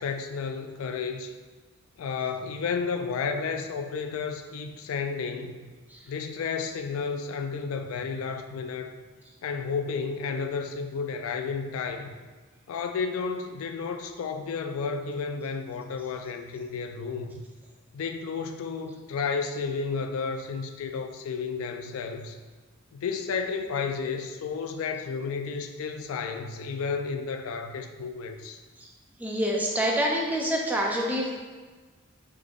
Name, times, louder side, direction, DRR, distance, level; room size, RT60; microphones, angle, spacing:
voice 1, 0.0-1.3 2.0-5.7 6.1-8.9 9.4-12.1 12.7-17.4 17.9-22.4 22.9-28.6, left 5 dB, 80° left, 7 dB, 0.3 m, -32 dB
voice 2, 29.2-31.3, equal, 10° right, -2 dB, 0.4 m, -26 dB
3.9 x 3.2 x 2.4 m, 1.4 s
head